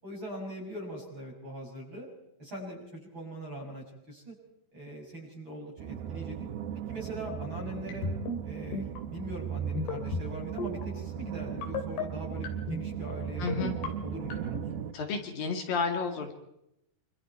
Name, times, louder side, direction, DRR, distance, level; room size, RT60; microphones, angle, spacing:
voice 1, 0.0-2.1 2.4-4.3 4.7-6.5 6.9-8.1 8.4-8.8 9.1-13.5 13.8-14.6, right 1 dB, 25° right, -2 dB, 7.4 m, -41 dB
sound 1, 5.8-14.9, right 8 dB, 70° right, 2.9 m, -37 dB
sound 2, 7.9-8.4 8.7-9.0 9.8-10.3 10.6-10.9 11.6-12.0 12.4-12.8 13.5-13.9 14.3-14.6, left 3 dB, 75° left, 4.9 m, -32 dB
voice 2, 13.4-13.7 14.9-16.3, left 5 dB, 60° left, 4 dB, 4.0 m, -31 dB
27.0 x 26.0 x 4.6 m, 0.81 s
omnidirectional pair, 4.7 m